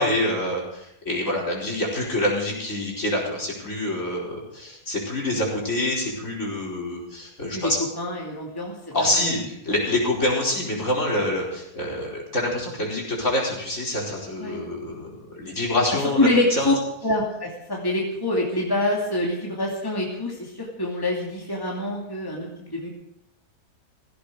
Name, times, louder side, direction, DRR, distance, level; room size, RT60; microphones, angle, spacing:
voice 1, 0.0-7.8 8.9-16.8, left 1 dB, 50° left, -3 dB, 5.2 m, -26 dB
voice 2, 8.0-9.4 14.4-14.6 16.2-16.7 17.0-22.9, left 1 dB, 15° left, -2 dB, 2.7 m, -25 dB
17.5 x 16.0 x 5.0 m, 0.81 s
omnidirectional pair, 1.7 m